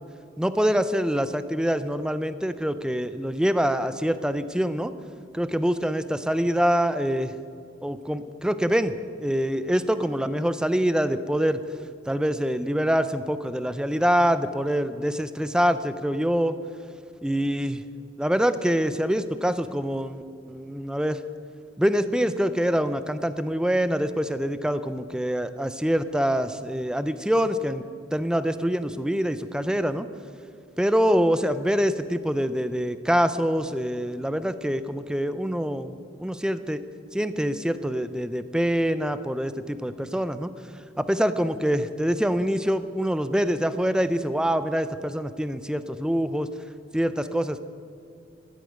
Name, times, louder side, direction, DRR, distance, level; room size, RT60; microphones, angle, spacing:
voice 1, 0.4-4.9 5.3-7.3 7.8-11.6 12.1-16.6 17.2-17.8 18.2-20.2 20.5-21.2 21.8-30.1 30.8-36.8 37.1-40.5 41.0-46.5 46.9-47.6, equal, 5° right, 12 dB, 0.5 m, -25 dB
14.0 x 8.3 x 9.1 m, 2.4 s
head